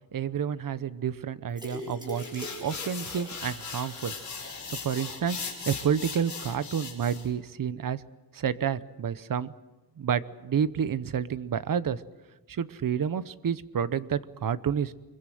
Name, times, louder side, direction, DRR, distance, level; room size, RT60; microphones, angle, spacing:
voice 1, 0.1-4.1 4.7-5.4 5.7-8.0 8.3-9.5 10.0-12.0 12.5-14.9, right 8 dB, 60° right, 15 dB, 0.9 m, -29 dB
sound 1, 1.5-4.6 5.0-5.1 5.4-5.5, left 1 dB, 10° right, 7.9 m, -42 dB
sound 2, 2.1-7.3, left 5 dB, 50° left, 5.3 m, -39 dB
25.5 x 22.5 x 7.9 m, 1.1 s
wide cardioid pair, 175°, 37 cm